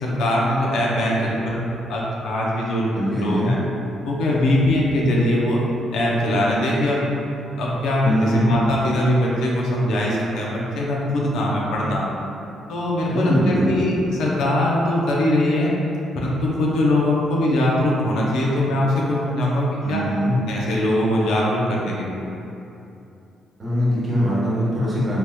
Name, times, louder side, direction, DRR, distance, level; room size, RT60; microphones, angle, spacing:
voice 1, 0.0-3.6 4.1-5.6 5.9-7.0 7.6-12.0 12.7-13.9 14.2-15.8 16.1-20.0 20.5-22.2, left 1 dB, 80° left, -4 dB, 0.5 m, -21 dB
voice 2, 2.9-3.5 8.0-8.5 13.1-13.8 19.8-20.4 23.6-25.2, equal, 30° right, -9 dB, 1.3 m, -22 dB
3.4 x 2.9 x 2.2 m, 2.8 s
cardioid pair, 90°, 0 cm